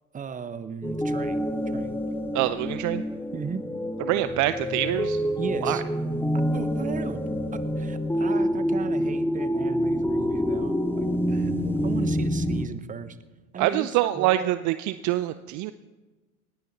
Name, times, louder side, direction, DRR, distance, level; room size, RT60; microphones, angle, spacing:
voice 1, 0.1-1.5 1.7-2.0 3.3-3.6 5.4-5.8 6.5-7.2 7.5-13.2 13.5-14.6, right 6 dB, 20° right, 13 dB, 0.8 m, -36 dB
sound 1, 0.8-12.7, equal, 5° left, 1.2 m, -27 dB
voice 2, 2.3-3.0 4.1-5.2 5.6-5.8 13.6-15.7, right 15 dB, 40° right, 14 dB, 0.6 m, -25 dB
19.0 x 15.5 x 4.1 m, 1.2 s
hypercardioid pair, 75°, 44 cm